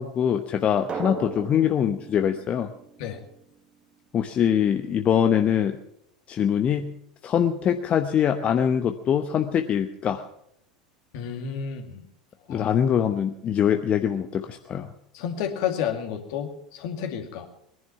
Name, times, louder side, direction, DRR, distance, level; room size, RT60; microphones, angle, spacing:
voice 1, 0.0-2.7 4.1-5.8 6.3-7.0 7.2-10.2 12.5-14.9, left 9 dB, 35° left, 7 dB, 0.9 m, -23 dB
Drum, 0.9-3.6, right 6 dB, 30° right, 1.7 m, -38 dB
voice 2, 11.1-12.0 12.5-12.7 15.1-17.5, left 8 dB, 60° left, 4 dB, 2.3 m, -31 dB
20.5 x 11.0 x 5.8 m, 0.75 s
figure-of-eight pair, 80°, 4 cm